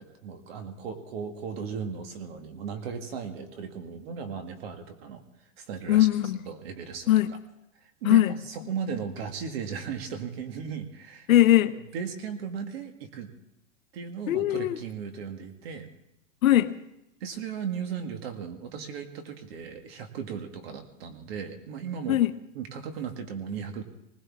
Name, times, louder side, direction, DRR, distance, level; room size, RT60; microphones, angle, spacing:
voice 1, 0.0-5.2 5.6-6.1 6.5-7.1 7.8-11.3 11.7-13.3 13.9-15.9 17.2-22.2 22.6-23.8, right 6 dB, 45° right, 1.8 m, -36 dB
voice 2, 5.9-6.4 7.1-7.3 8.0-8.4 11.3-11.7 14.3-14.8 16.4-16.8 22.1-22.3, left 14 dB, 75° left, 1.1 m, -20 dB
20.5 x 18.5 x 3.6 m
supercardioid pair, 175°, 41 cm